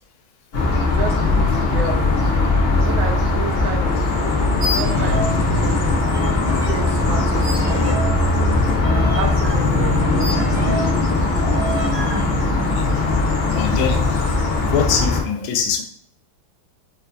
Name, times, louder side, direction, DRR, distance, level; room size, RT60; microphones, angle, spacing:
sound 1, 0.5-15.2, left 3 dB, 65° left, 0.6 m, -19 dB
voice 1, 0.8-2.1 2.8-3.9 4.3-5.2 5.5-5.8 6.6-7.8 9.2-10.8, right 5 dB, 80° right, 2 dB, 1.3 m, -31 dB
sound 2, 4.5-5.4 5.7-6.7 7.4-11.0 11.5-12.2, right 2 dB, 55° right, 0.9 m, -30 dB
voice 2, 13.5-14.0 14.6-15.8, left 7 dB, 85° left, 5 dB, 1.4 m, -23 dB
4.7 x 2.5 x 2.2 m, 0.63 s
omnidirectional pair, 2.3 m